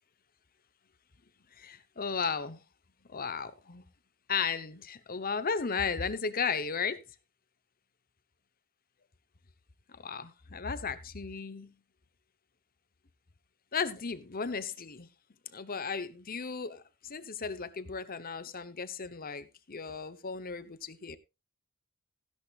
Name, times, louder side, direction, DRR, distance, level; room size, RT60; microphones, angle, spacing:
voice 1, 1.5-2.6 3.1-3.8 4.3-7.0 9.9-11.7 13.7-15.1 15.5-21.2, left 5 dB, 40° left, 0.9 m, -35 dB
16.0 x 11.0 x 2.5 m
head